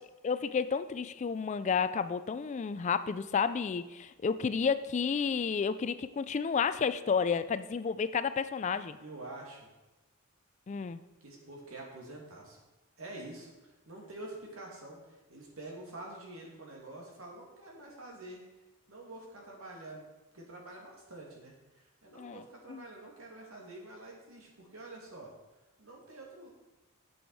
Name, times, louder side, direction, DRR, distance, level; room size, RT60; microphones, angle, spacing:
voice 1, 0.2-9.0 10.7-11.0 22.2-22.4 22.7-22.8, left 6 dB, 35° left, 13 dB, 0.3 m, -31 dB
voice 2, 9.0-9.7 11.2-12.6 13.0-18.4 18.9-20.0 20.3-21.5 22.0-25.3 25.8-26.5, right 2 dB, 75° right, -1 dB, 2.4 m, -47 dB
9.0 x 7.0 x 4.7 m, 1.1 s
head